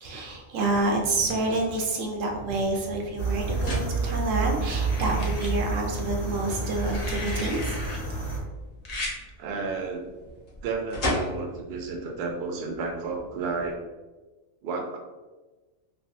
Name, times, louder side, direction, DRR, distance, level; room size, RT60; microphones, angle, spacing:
voice 1, 0.0-7.8, right 2 dB, 80° right, 1 dB, 1.0 m, -28 dB
sound 1, 0.8-13.7, left 1 dB, 75° left, 1.3 m, -39 dB
sound 2, 3.2-8.4, right 4 dB, 25° left, 0.8 m, -29 dB
sound 3, 3.6-4.3 4.8-5.5 6.6-8.0 8.8-9.2 10.5-10.7, left 1 dB, 45° left, 0.6 m, -36 dB
voice 2, 9.4-10.0 10.6-13.8 14.6-15.0, right 4 dB, 60° right, 1 dB, 0.7 m, -32 dB
3.4 x 2.3 x 2.6 m, 1.2 s
omnidirectional pair, 1.3 m